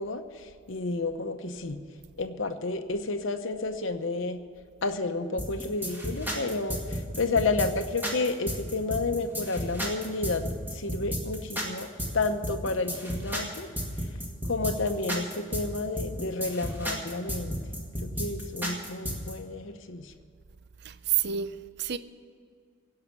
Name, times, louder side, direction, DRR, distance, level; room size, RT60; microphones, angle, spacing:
voice 1, 0.0-1.8 2.2-4.4 4.8-10.4 10.7-11.9 12.1-13.7 14.5-17.6 18.0-20.1, left 3 dB, 65° left, 0.9 m, -31 dB
sound 1, 5.4-19.3, equal, 10° right, 2.1 m, -33 dB
voice 2, 20.8-22.0, right 10 dB, 55° right, 0.5 m, -29 dB
17.0 x 5.7 x 9.4 m
head